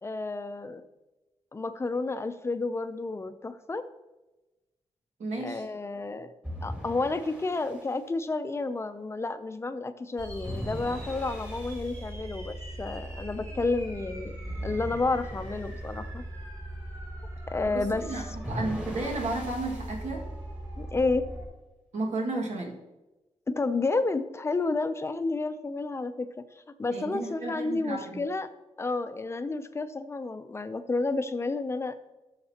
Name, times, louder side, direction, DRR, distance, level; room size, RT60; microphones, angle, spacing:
voice 1, 0.0-0.8 1.5-3.8 5.4-6.3 6.6-14.4 14.6-16.2 17.5-18.2 20.8-21.3 23.5-28.5 28.8-32.0, left 3 dB, 25° left, 10 dB, 0.5 m, -31 dB
voice 2, 5.2-5.6 17.7-20.2 21.9-22.7 26.9-28.2, right 2 dB, 85° right, -1 dB, 2.0 m, -33 dB
sound 1, 6.4-7.9 10.4-11.9 14.4-15.8 18.4-20.0, equal, 10° right, 1.7 m, -39 dB
sound 2, 10.2-21.5, right 1 dB, 25° right, 2.6 m, -40 dB
14.0 x 6.6 x 2.9 m, 1.1 s
wide cardioid pair, 150°, 11 cm